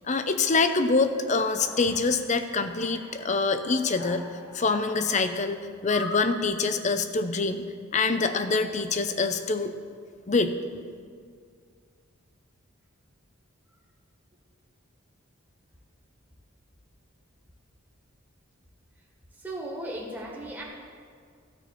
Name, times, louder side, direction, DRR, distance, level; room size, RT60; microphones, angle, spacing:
voice 1, 0.1-4.2 4.5-7.6 7.9-9.7 10.3-10.6, left 4 dB, 35° left, 9 dB, 0.6 m, -25 dB
Alarm, 1.2-2.3 2.8-3.3 3.7-5.4 5.9-6.4, left 2 dB, 80° left, 1.9 m, -42 dB
voice 2, 19.4-20.6, right 1 dB, 10° right, -3 dB, 1.6 m, -36 dB
13.5 x 6.0 x 8.4 m, 2.1 s
head